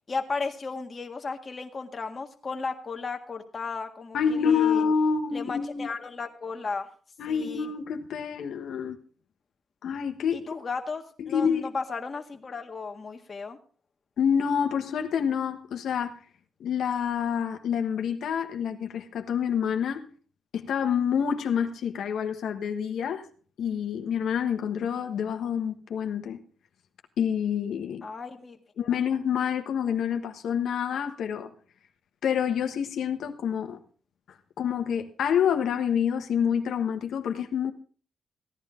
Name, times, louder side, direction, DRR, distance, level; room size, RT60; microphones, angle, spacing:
voice 1, 0.1-4.8 5.3-6.9 7.3-7.7 10.3-13.6 28.0-28.6 28.9-29.0, left 4 dB, 40° left, 1.8 m, -35 dB
voice 2, 4.1-5.9 7.2-9.0 9.8-10.5 11.2-11.7 14.2-16.1 16.6-20.0 20.5-23.2 23.6-26.4 27.2-28.0 28.8-31.5 32.2-33.8 34.6-37.7, left 7 dB, 80° left, 1.3 m, -27 dB
16.0 x 10.5 x 3.7 m
cardioid pair, 70°, 0 cm